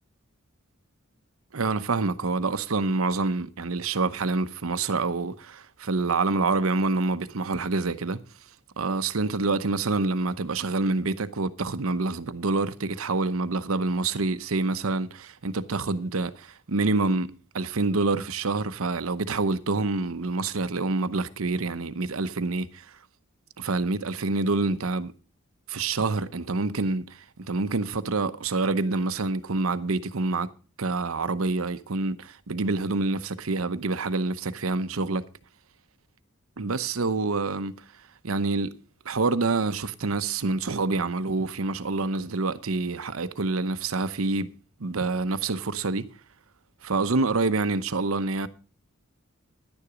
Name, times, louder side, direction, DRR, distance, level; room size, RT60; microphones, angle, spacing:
voice 1, 1.5-8.2 8.8-23.0 23.6-25.1 25.7-30.5 30.8-35.3 36.6-37.8 38.2-46.1 46.8-48.5, right 3 dB, 80° right, 0.8 m, -27 dB
11.0 x 9.9 x 5.0 m
head